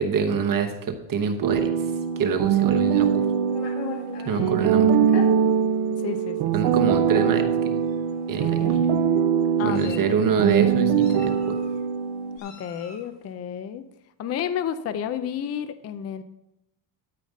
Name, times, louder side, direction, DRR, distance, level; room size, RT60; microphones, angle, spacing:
voice 1, 0.0-1.7 2.2-3.1 4.3-4.9 6.5-7.8 8.3-8.8 9.6-11.6, right 6 dB, 45° right, 5 dB, 1.0 m, -25 dB
sound 1, 1.4-12.4, right 8 dB, 65° right, 0.7 m, -22 dB
Meow, 2.8-4.4 5.1-5.3 6.1-6.2 6.6-6.8 7.8-8.0 8.3-8.9 9.5-10.2 11.0-11.7 12.4-13.1, left 5 dB, 65° left, 2.3 m, -40 dB
voice 2, 4.3-5.1 6.0-6.4 8.6-8.8 9.6-10.0 12.4-13.8 14.2-16.2, left 9 dB, 35° left, 11 dB, 0.5 m, -31 dB
12.5 x 5.0 x 5.2 m, 0.84 s
cardioid pair, 145°, 47 cm